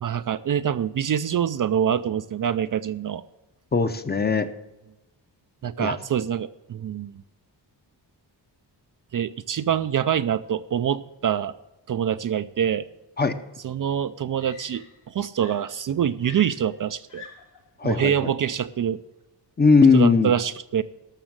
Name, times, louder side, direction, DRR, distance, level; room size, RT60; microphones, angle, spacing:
voice 1, 0.0-3.2 5.6-7.2 9.1-11.5 11.9-12.9 13.6-17.2 17.8-19.0 19.9-20.8, right 9 dB, 50° right, 12 dB, 0.4 m, -25 dB
voice 2, 3.7-4.5 5.8-5.9 13.2-13.3 17.8-18.1 19.6-20.3, left 4 dB, 25° left, 10 dB, 0.7 m, -18 dB
Screaming, 13.5-13.6 14.3-15.1 15.4-17.7 18.7-18.9, left 6 dB, 70° left, 3.3 m, -48 dB
13.0 x 6.2 x 7.4 m, 1.0 s
wide cardioid pair, 160°, 43 cm